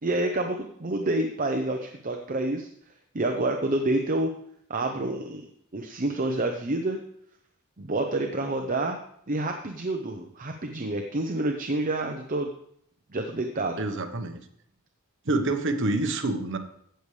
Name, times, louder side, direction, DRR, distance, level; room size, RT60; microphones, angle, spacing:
voice 1, 0.0-2.7 3.1-4.3 4.7-7.0 7.8-9.0 9.3-12.5 13.1-13.8, right 2 dB, 40° right, 4 dB, 0.8 m, -28 dB
voice 2, 13.8-14.4 15.2-16.6, right 2 dB, 60° right, 6 dB, 1.1 m, -27 dB
15.5 x 6.9 x 3.3 m, 0.69 s
head